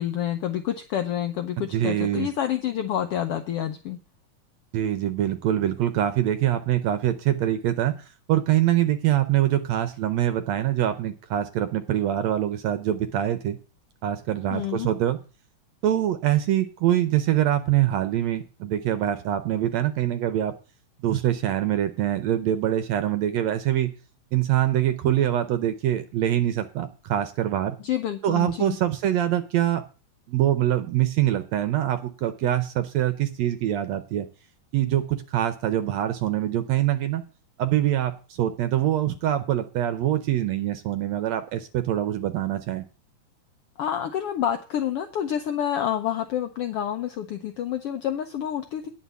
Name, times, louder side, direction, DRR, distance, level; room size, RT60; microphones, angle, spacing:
voice 1, 0.0-4.0 14.5-14.9 27.8-28.8 43.8-48.9, left 10 dB, 85° left, 7 dB, 1.3 m, -28 dB
voice 2, 1.6-2.3 4.7-13.6 14.0-15.2 15.8-20.5 21.0-23.9 24.3-27.8 28.2-29.8 30.3-34.3 34.7-37.2 37.6-42.8, right 12 dB, 75° right, 10 dB, 1.7 m, -24 dB
10.0 x 5.8 x 8.1 m, 0.35 s
omnidirectional pair, 3.6 m